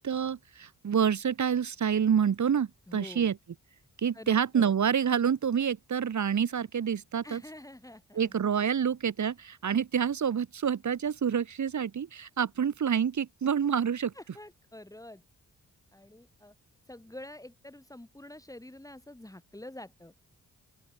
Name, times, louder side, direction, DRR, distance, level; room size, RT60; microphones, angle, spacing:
voice 1, 0.0-3.3 4.0-7.4 8.2-14.1, right 7 dB, 60° right, 1.7 m, -27 dB
voice 2, 2.9-3.3 4.1-4.7 7.2-8.4 14.1-15.2 15.9-16.5 16.9-20.1, left 1 dB, 10° left, 3.8 m, -47 dB
open air
cardioid pair, 80°, 33 cm